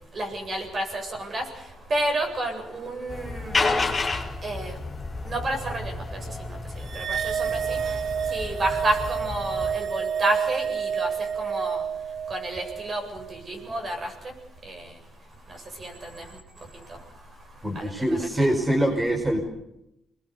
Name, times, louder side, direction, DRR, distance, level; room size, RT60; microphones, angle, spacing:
voice 1, 0.1-1.4 1.9-3.6 4.4-4.8 5.2-6.2 6.9-7.8 8.3-11.1 11.4-11.8 12.3-14.1 14.6-14.9 15.8-16.2 17.7-18.5, right 1 dB, 40° right, 3 dB, 7.8 m, -30 dB
sound 1, 3.1-9.7, left 3 dB, 20° left, 5.1 m, -31 dB
sound 2, 6.9-13.4, right 7 dB, 65° right, 1.7 m, -29 dB
voice 2, 17.6-19.4, right 1 dB, 15° right, 2 dB, 5.0 m, -24 dB
28.0 x 21.5 x 7.0 m, 0.83 s
cardioid pair, 90°, 0 cm